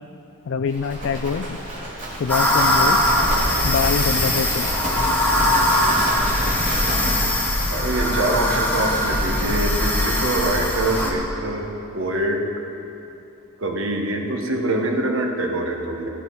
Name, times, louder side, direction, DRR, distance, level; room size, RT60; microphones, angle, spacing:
voice 1, 0.5-1.6 2.2-3.1 3.6-4.7, left 6 dB, 55° left, 9 dB, 0.3 m, -25 dB
Livestock farm animals working animals, 0.7-7.1, right 1 dB, 35° right, 2.9 m, -30 dB
sound 1, 2.3-11.1, left 1 dB, 10° left, 1.2 m, -21 dB
voice 2, 7.7-11.7 11.9-12.4 13.6-16.1, right 2 dB, 65° right, 2 dB, 1.3 m, -24 dB
16.0 x 9.7 x 4.7 m, 2.8 s
head